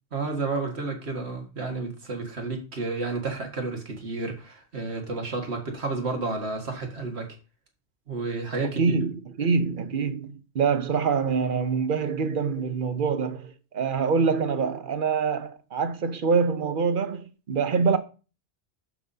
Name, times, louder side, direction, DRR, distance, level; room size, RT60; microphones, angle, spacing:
voice 1, 0.1-7.3 8.1-9.0, right 3 dB, 70° right, 2.0 m, -31 dB
voice 2, 8.8-18.0, right 5 dB, 55° right, 0.9 m, -25 dB
12.0 x 5.8 x 2.7 m
omnidirectional pair, 1.1 m